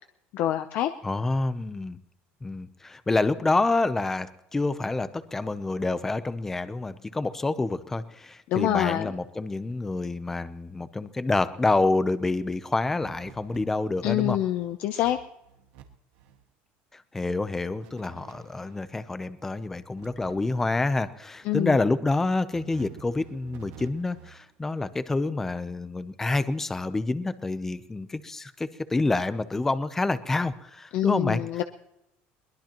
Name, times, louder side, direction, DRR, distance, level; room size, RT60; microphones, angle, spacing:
voice 1, 0.3-0.9 8.5-9.1 14.0-15.2 21.4-21.8 30.9-31.6, left 13 dB, 45° left, 8 dB, 0.7 m, -26 dB
voice 2, 1.0-2.0 2.4-14.4 16.9-31.4, left 3 dB, 10° left, 13 dB, 0.6 m, -27 dB
sound 1, 13.0-14.2 14.6-14.7 15.0-15.8 16.1-16.4 17.8-18.9 20.0-21.0 22.5-24.5, right 11 dB, 90° right, 1.9 m, -49 dB
22.0 x 20.5 x 3.0 m, 0.86 s
cardioid pair, 175°, 4 cm